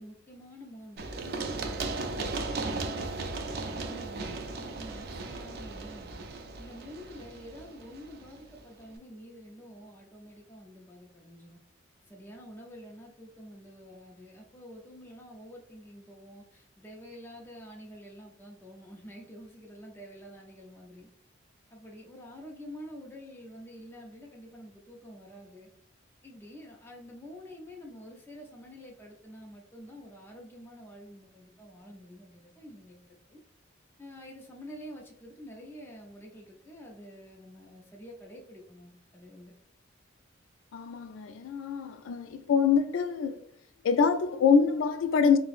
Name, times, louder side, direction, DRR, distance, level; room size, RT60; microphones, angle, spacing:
voice 1, 0.0-3.3 3.7-6.2 6.6-11.6 12.0-21.1 21.7-25.7 26.2-33.4 34.0-39.5, equal, 10° left, 0.4 m, -48 dB
Run, 1.0-8.6, right 3 dB, 50° right, 0.4 m, -36 dB
voice 2, 40.7-43.4 43.8-45.4, left 6 dB, 80° left, 0.3 m, -25 dB
4.2 x 2.0 x 2.4 m
head